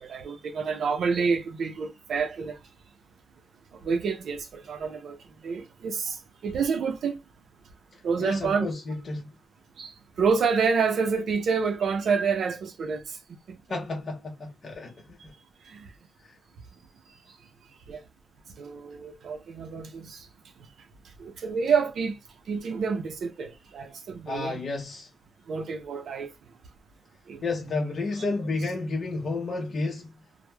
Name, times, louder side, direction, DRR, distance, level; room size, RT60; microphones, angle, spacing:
voice 1, 0.0-2.6 3.8-5.2 5.4-7.2 8.0-8.7 9.8-13.2 13.5-13.6 15.7-15.9 17.9-18.0 18.6-20.3 21.2-22.2 22.5-24.6 25.5-26.3 27.3-27.4, right 5 dB, 80° right, 0.4 m, -28 dB
voice 2, 8.2-9.3 13.7-15.2 16.2-16.3 24.3-25.1 27.4-30.1, left 3 dB, 45° left, 0.6 m, -31 dB
2.2 x 2.0 x 3.0 m
wide cardioid pair, 135°, 0 cm